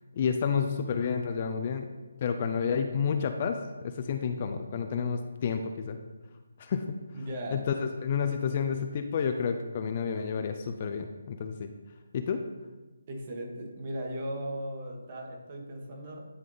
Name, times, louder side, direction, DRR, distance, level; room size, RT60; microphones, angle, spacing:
voice 1, 0.1-1.9 2.2-6.0 6.6-7.0 7.5-11.7 12.1-12.4, left 6 dB, 35° left, 6 dB, 0.5 m, -30 dB
voice 2, 7.1-7.8 13.1-16.3, right 1 dB, 35° right, 0 dB, 1.5 m, -37 dB
9.9 x 3.6 x 4.0 m, 1.2 s
hypercardioid pair, 160°, 0 cm